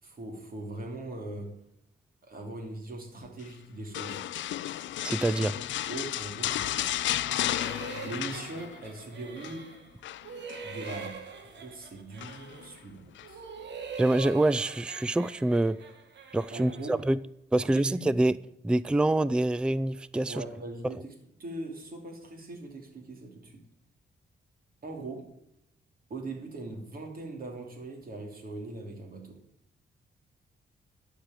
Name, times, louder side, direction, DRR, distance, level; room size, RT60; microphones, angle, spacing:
voice 1, 0.0-1.6 2.2-4.2 5.4-5.5 5.8-7.0 8.0-9.7 10.6-13.4 16.5-17.0 17.6-18.1 20.2-23.6 24.8-25.3 26.1-29.4, right 2 dB, 50° right, 2.9 m, -41 dB
sound 1, 3.9-9.0 9.2-9.6 10.0-11.1 12.2-12.6 13.2-13.3, left 13 dB, 80° left, 0.4 m, -33 dB
voice 2, 5.0-5.5 14.0-15.8 16.3-17.2 17.5-18.4 18.6-20.4, right 1 dB, 5° right, 0.3 m, -26 dB
sound 2, 7.2-9.9 10.2-12.8 13.2-17.0, right 6 dB, 70° right, 1.6 m, -43 dB
11.5 x 5.0 x 7.6 m
cardioid pair, 105°, 19 cm